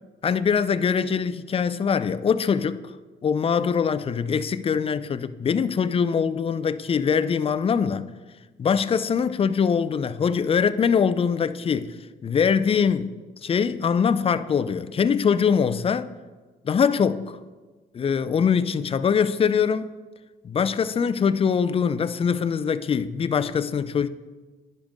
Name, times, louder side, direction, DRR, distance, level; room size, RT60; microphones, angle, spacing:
voice 1, 0.2-2.8 3.2-8.1 8.6-11.9 12.2-13.1 13.4-16.1 16.6-17.4 17.9-19.9 20.4-24.1, left 6 dB, 30° left, 0.4 m, -23 dB
10.5 x 5.2 x 3.5 m
cardioid pair, 90°, 20 cm